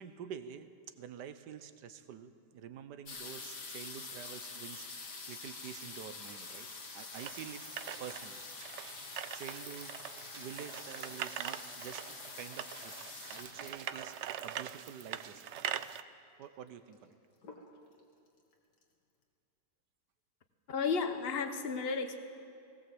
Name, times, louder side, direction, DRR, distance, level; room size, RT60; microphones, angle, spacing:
voice 1, 0.0-6.7 6.9-8.5 8.9-10.0 10.3-12.9 13.3-15.5 16.4-17.2, right 8 dB, 85° right, 11 dB, 1.5 m, -48 dB
sound 1, 3.1-15.6 16.4-16.5 16.7-17.1 17.4-18.0 18.5-18.6 18.8-18.9, left 4 dB, 80° left, 2.5 m, -47 dB
sound 2, 7.1-16.0, right 10 dB, 70° right, 0.6 m, -43 dB
voice 2, 20.7-22.2, left 5 dB, 40° left, 8 dB, 1.3 m, -33 dB
19.0 x 18.0 x 7.8 m, 2.5 s
omnidirectional pair, 1.8 m